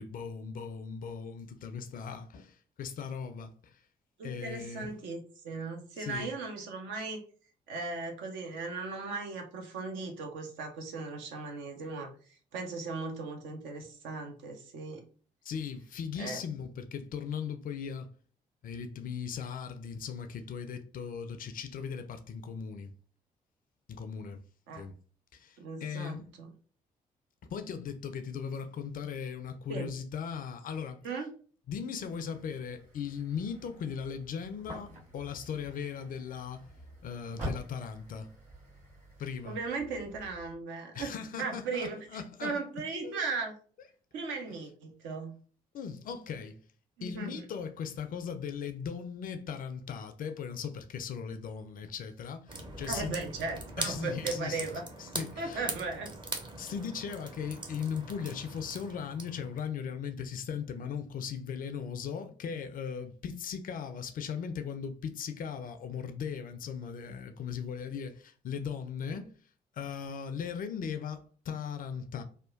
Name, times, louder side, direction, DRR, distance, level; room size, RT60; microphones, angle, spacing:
voice 1, 0.0-3.8 4.2-4.9 6.0-6.3 15.4-18.1 18.6-22.9 23.9-24.4 24.8-25.0 25.3-26.3 27.5-31.0 31.7-36.7 37.0-38.3 39.2-39.6 40.9-42.6 43.0-43.2 45.7-46.6 47.0-53.2 53.8-55.7 56.6-69.3 69.7-72.2, left 7 dB, 40° left, 0.4 m, -38 dB
voice 2, 4.2-7.2 7.7-15.0 16.2-16.4 24.7-24.8 25.6-26.5 29.7-29.9 31.0-31.3 39.4-43.5 44.1-45.4 47.0-47.4 52.9-54.8 55.4-56.1 69.1-69.2, right 4 dB, 60° right, 0.6 m, -37 dB
sound 1, 32.0-40.5, equal, 35° right, 1.5 m, -47 dB
sound 2, 52.5-59.6, right 2 dB, 20° right, 0.7 m, -41 dB
2.8 x 2.1 x 2.4 m
figure-of-eight pair, 40°, 21 cm